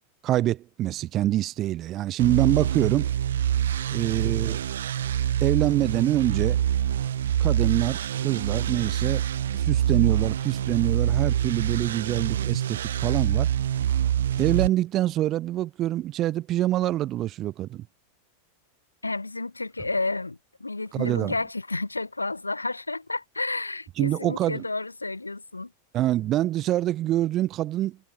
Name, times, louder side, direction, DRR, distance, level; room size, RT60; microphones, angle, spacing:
voice 1, 0.2-3.1 3.9-4.6 5.4-6.6 7.4-9.2 9.5-13.5 14.4-17.9 20.9-21.3 24.0-24.6 25.9-28.0, right 14 dB, 35° right, 1.0 m, -25 dB
sound 1, 2.2-14.7, right 10 dB, 65° right, 0.8 m, -25 dB
voice 2, 19.0-25.7, left 2 dB, 80° left, 0.6 m, -31 dB
figure-of-eight pair, 90°, 0 cm